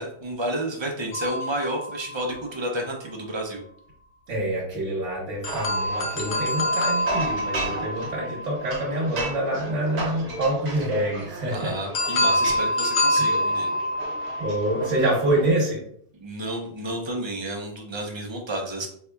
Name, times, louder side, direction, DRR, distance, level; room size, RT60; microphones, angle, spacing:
voice 1, 0.0-3.6 11.5-13.7 16.1-18.9, right 1 dB, 35° right, 1 dB, 0.5 m, -31 dB
sound 1, 1.1-2.8 5.4-9.3 11.9-15.4, left 1 dB, 70° left, 0.9 m, -27 dB
voice 2, 4.3-11.8 13.1-13.3 14.4-15.8, right 1 dB, 90° right, -5 dB, 1.2 m, -26 dB
sound 2, 5.4-15.5, right 2 dB, 60° right, 1.1 m, -35 dB
4.4 x 2.7 x 2.2 m, 0.64 s
omnidirectional pair, 1.3 m